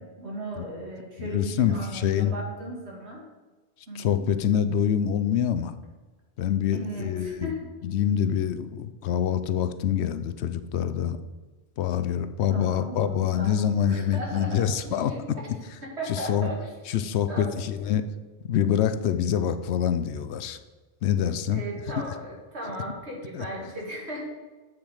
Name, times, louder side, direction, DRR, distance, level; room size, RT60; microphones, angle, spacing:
voice 1, 0.0-3.2 3.9-4.2 6.7-7.7 12.5-15.4 15.8-16.7 17.3-17.5 21.5-24.2, right 1 dB, 85° right, -2 dB, 2.3 m, -36 dB
voice 2, 1.2-2.3 3.9-5.7 6.4-7.5 7.8-11.2 11.8-15.1 16.1-16.5 16.9-18.0 18.5-20.6 21.0-21.6 23.3-23.4, left 9 dB, 80° left, 11 dB, 0.9 m, -25 dB
7.7 x 7.1 x 4.9 m, 1.3 s
omnidirectional pair, 1.1 m